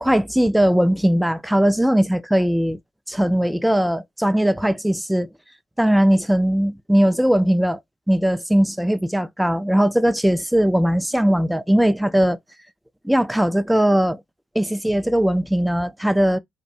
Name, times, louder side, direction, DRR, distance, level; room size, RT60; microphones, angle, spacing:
voice 1, 0.0-2.8 3.1-5.3 5.8-7.8 8.1-12.4 13.0-14.2 14.6-16.4, equal, 5° right, 0.3 m, -19 dB
2.3 x 2.1 x 2.6 m
hypercardioid pair, 45°, 0 cm